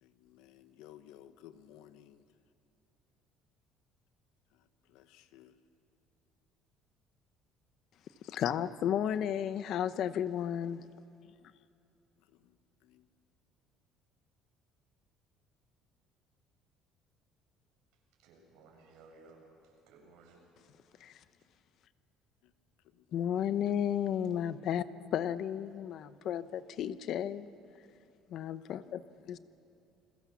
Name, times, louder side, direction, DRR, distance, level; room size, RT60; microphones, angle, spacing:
voice 1, 0.0-2.2 4.5-5.6 8.2-8.3 12.2-12.6 12.8-13.1 22.4-22.5 22.8-23.5 25.0-25.1 28.6-29.3, left 11 dB, 90° left, 11 dB, 1.1 m, -58 dB
voice 2, 8.3-10.8 21.0-21.2 23.1-24.8 25.1-27.5 28.3-29.0 29.3-29.4, left 9 dB, 50° left, 14 dB, 0.8 m, -33 dB
voice 3, 18.2-20.4, right 3 dB, 80° right, 0 dB, 7.4 m, -58 dB
29.0 x 22.5 x 7.2 m, 2.6 s
cardioid pair, 165°, 0 cm